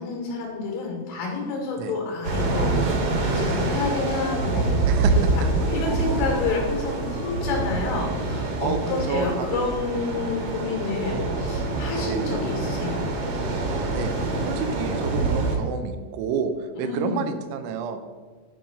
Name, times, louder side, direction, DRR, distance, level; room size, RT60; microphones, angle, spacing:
voice 1, 0.0-5.2 5.5-13.0 16.8-17.2, left 4 dB, 85° left, 0 dB, 4.5 m, -29 dB
sound 1, 2.2-15.6, right 2 dB, 60° right, 2.5 m, -26 dB
Motor vehicle (road) / Siren, 2.4-11.3 11.8-12.2, left 1 dB, 40° left, 1.1 m, -45 dB
voice 2, 4.9-5.3 8.6-9.8 11.2-11.6 12.0-12.4 13.7-16.5 16.8-18.0, right 6 dB, 85° right, 8 dB, 3.1 m, -30 dB
10.5 x 5.3 x 5.2 m, 1.5 s
omnidirectional pair, 5.4 m